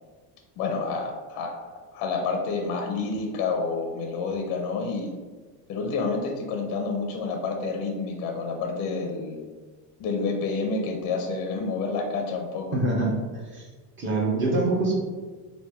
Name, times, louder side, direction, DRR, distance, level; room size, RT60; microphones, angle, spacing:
voice 1, 0.6-5.1 5.7-9.4 10.0-12.8, left 4 dB, 45° left, 3 dB, 0.4 m, -29 dB
voice 2, 12.7-13.2 13.5-13.7 14.0-14.9, right 2 dB, 30° right, -3 dB, 0.8 m, -24 dB
3.2 x 2.5 x 3.4 m, 1.4 s
cardioid pair, 165°, 42 cm